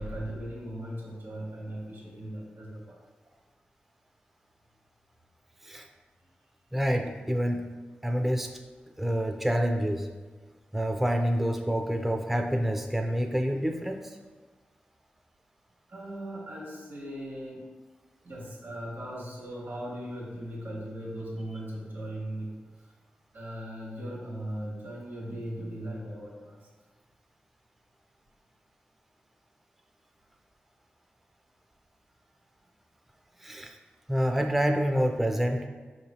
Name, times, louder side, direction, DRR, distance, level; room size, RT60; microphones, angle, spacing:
voice 1, 0.0-3.0 3.2-3.3 15.9-17.6 18.2-22.6 23.3-26.6, right 1 dB, 80° right, -4 dB, 1.4 m, -38 dB
voice 2, 6.7-7.7 8.0-8.5 9.0-10.1 10.7-14.2 33.4-33.8 34.1-35.7, equal, 5° right, 4 dB, 0.3 m, -27 dB
4.6 x 2.9 x 2.7 m, 1.4 s
cardioid pair, 45°, 4 cm